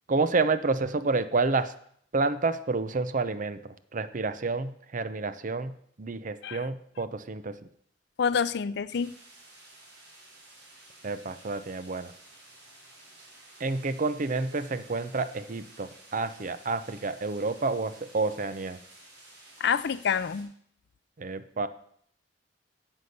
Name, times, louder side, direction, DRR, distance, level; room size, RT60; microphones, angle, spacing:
voice 1, 0.1-1.7 2.1-7.6 11.0-12.1 13.6-18.8 21.2-21.7, right 3 dB, 45° right, 0.7 m, -29 dB
voice 2, 8.2-9.1 19.6-20.5, left 6 dB, 65° left, 0.4 m, -27 dB
sound 1, 8.9-20.4, right 2 dB, 65° right, 5.9 m, -53 dB
9.5 x 8.2 x 6.7 m
head